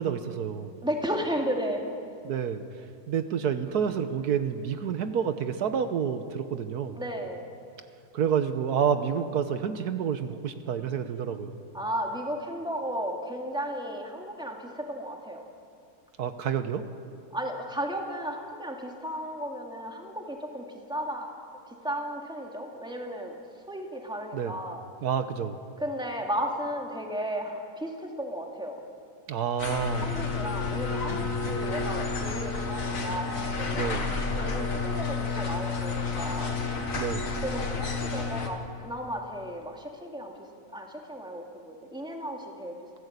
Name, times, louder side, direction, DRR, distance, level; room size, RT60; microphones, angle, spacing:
voice 1, 0.0-0.7 2.2-2.6 3.1-7.0 8.1-11.5 16.2-16.8 24.3-24.6 25.0-25.6 29.3-30.1 33.7-34.1 36.9-37.4, right 7 dB, 75° right, 9 dB, 1.4 m, -29 dB
voice 2, 0.8-1.8 6.9-7.4 11.7-15.4 17.3-21.3 21.8-23.4 23.7-24.8 25.8-28.8 29.9-34.0 34.3-36.5 37.4-40.3 40.7-42.7, equal, 5° right, 1 dB, 2.4 m, -34 dB
sound 1, 29.6-38.5, left 4 dB, 55° left, 2.2 m, -30 dB
26.5 x 15.5 x 8.2 m, 2.4 s
omnidirectional pair, 1.7 m